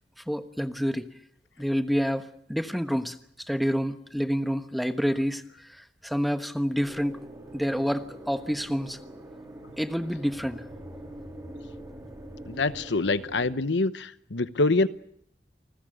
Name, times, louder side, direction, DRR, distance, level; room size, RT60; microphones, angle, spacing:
voice 1, 0.3-1.1 1.6-3.2 3.5-7.2 7.5-9.0 9.8-10.6, equal, ahead, 7 dB, 1.2 m, -28 dB
sound 1, 6.8-13.6, right 1 dB, 15° right, 4.1 m, -44 dB
voice 2, 12.5-14.9, left 3 dB, 80° left, 13 dB, 1.0 m, -25 dB
29.0 x 20.0 x 7.9 m, 0.72 s
head